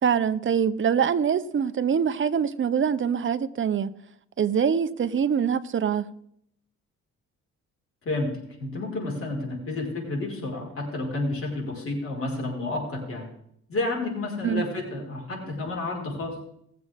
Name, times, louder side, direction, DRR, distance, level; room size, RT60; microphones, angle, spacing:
voice 1, 0.0-3.9 4.4-6.1 14.4-14.6, right 7 dB, 40° right, 0.9 m, -24 dB
voice 2, 8.6-13.3 13.7-16.3, left 2 dB, 45° left, 5.0 m, -30 dB
19.5 x 7.8 x 3.6 m
cardioid pair, 90°, 30 cm